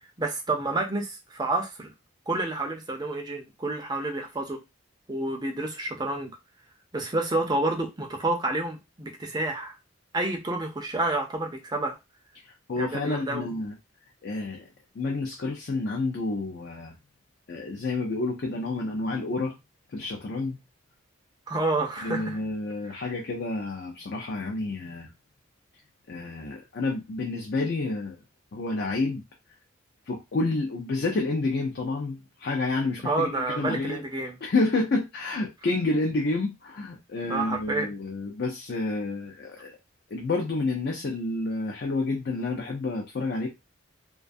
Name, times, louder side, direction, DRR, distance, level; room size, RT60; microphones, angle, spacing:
voice 1, 0.2-1.9 2.3-4.6 5.1-6.3 6.9-9.7 10.1-12.0 12.8-13.4 21.5-22.4 22.9-23.0 33.0-34.4 37.3-37.9, right 2 dB, 20° right, 0.4 m, -29 dB
voice 2, 12.4-13.8 14.2-14.7 15.0-16.9 17.5-19.5 19.9-20.6 22.0-25.1 26.1-28.2 28.5-29.2 30.1-34.0 34.4-39.8 40.1-43.5, left 3 dB, 50° left, 0.4 m, -29 dB
2.3 x 2.3 x 2.5 m
head